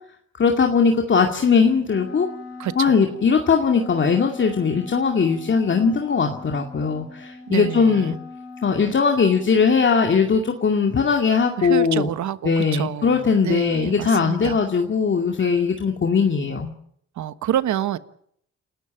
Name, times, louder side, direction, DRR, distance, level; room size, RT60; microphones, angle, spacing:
voice 1, 0.4-2.3 2.8-8.1 8.6-12.1 12.4-16.7, left 5 dB, 40° left, 2.3 m, -20 dB
Wind instrument woodwind instrument, 1.8-10.0, left 3 dB, 55° left, 4.5 m, -40 dB
voice 2, 2.6-3.0 7.5-8.1 11.6-14.6 17.2-18.0, right 11 dB, 70° right, 1.3 m, -27 dB
29.0 x 13.0 x 9.0 m
cardioid pair, 90°, 30 cm